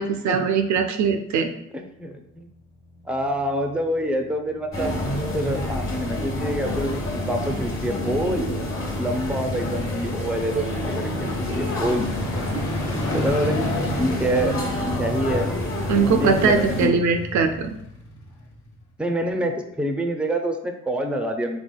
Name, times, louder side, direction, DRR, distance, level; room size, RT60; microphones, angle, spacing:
voice 1, 0.0-1.5 10.5-10.6 12.5-12.6 15.9-17.7, right 5 dB, 60° right, 6 dB, 0.5 m, -21 dB
voice 2, 1.7-2.5 3.1-5.0 5.3-8.5 9.0-12.1 13.1-14.6 14.9-15.5 16.1-16.8 19.0-21.6, right 1 dB, 5° right, 5 dB, 0.5 m, -26 dB
sound 1, 2.6-19.1 19.5-19.6, left 1 dB, 60° left, 1.1 m, -35 dB
sound 2, 4.7-16.9, left 1 dB, 40° left, 1.3 m, -28 dB
3.5 x 3.3 x 2.2 m, 0.78 s
hypercardioid pair, 50°, 32 cm